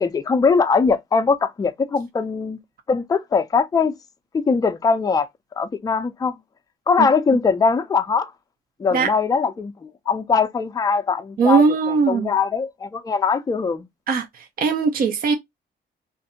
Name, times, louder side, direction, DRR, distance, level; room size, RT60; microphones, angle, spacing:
voice 1, 0.0-2.6 2.9-4.0 4.3-5.3 5.6-6.4 6.9-8.3 8.8-13.9, left 5 dB, 20° left, 0.4 m, -21 dB
voice 2, 11.4-12.3 14.1-15.4, right 5 dB, 45° right, 0.5 m, -19 dB
2.6 x 2.5 x 2.6 m
cardioid pair, 90°, 20 cm